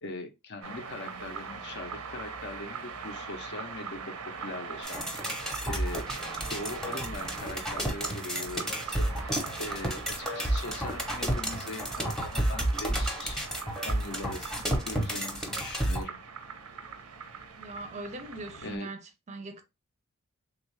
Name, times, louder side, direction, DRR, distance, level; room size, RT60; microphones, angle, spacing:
voice 1, 0.0-6.1 6.5-13.5 13.8-16.2 18.6-18.9, left 2 dB, 55° left, 0.6 m, -41 dB
sound 1, 0.6-18.8, right 5 dB, 90° right, 0.6 m, -41 dB
sound 2, 4.8-16.0, right 1 dB, 5° left, 0.7 m, -31 dB
voice 2, 17.6-19.0 19.3-19.6, right 2 dB, 30° right, 0.5 m, -40 dB
3.4 x 2.3 x 3.1 m
head